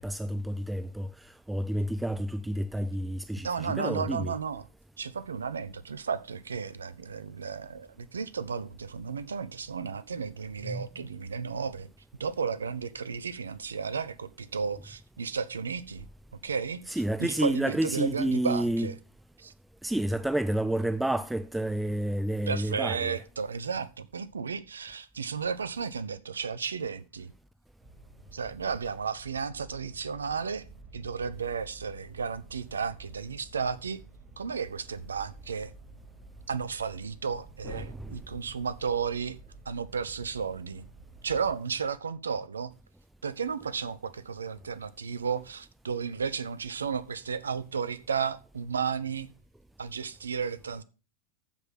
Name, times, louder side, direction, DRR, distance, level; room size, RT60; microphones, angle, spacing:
voice 1, 0.0-4.3 10.6-10.9 16.9-18.9 19.8-23.2 37.6-38.2, right 1 dB, 5° right, 0.5 m, -30 dB
voice 2, 3.4-4.6 5.0-11.9 12.2-16.0 16.4-16.8 17.2-18.9 19.4-19.5 22.5-27.3 28.3-30.6 30.9-34.0 34.4-35.7 36.5-39.4 39.6-40.8 41.2-42.7 43.2-49.3 49.8-50.8, right 6 dB, 70° right, 0.8 m, -33 dB
sound 1, 27.8-41.5, right 3 dB, 25° right, 4.3 m, -51 dB
14.5 x 5.8 x 5.8 m
figure-of-eight pair, 90°, 0 cm